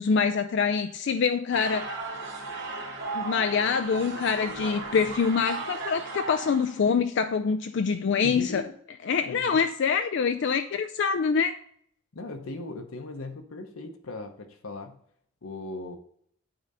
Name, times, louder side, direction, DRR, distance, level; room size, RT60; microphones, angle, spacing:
voice 1, 0.0-1.9 3.1-8.6 9.1-11.6, left 5 dB, 55° left, 9 dB, 0.3 m, -25 dB
sound 1, 1.5-6.8, right 3 dB, 55° right, 2.6 m, -36 dB
voice 2, 8.2-8.7 9.2-9.6 12.1-15.0 15.4-16.0, left 2 dB, 75° left, 4 dB, 0.9 m, -38 dB
8.9 x 3.9 x 5.4 m, 0.65 s
head